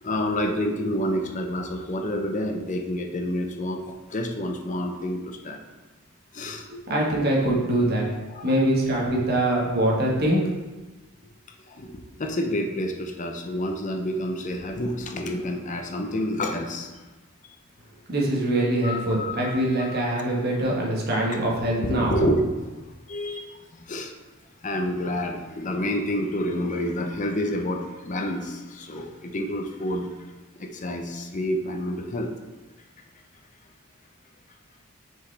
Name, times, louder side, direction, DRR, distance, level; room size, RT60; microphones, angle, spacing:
voice 1, 0.0-5.6 6.3-6.7 8.3-8.6 11.7-17.0 18.8-20.0 21.7-22.8 23.1-24.1 24.6-30.1 30.6-32.3, equal, 40° left, 4 dB, 0.6 m, -29 dB
voice 2, 6.7-8.1 8.4-10.4 18.1-22.1, right 1 dB, 50° right, -3 dB, 1.4 m, -23 dB
6.4 x 4.9 x 3.3 m, 1.2 s
head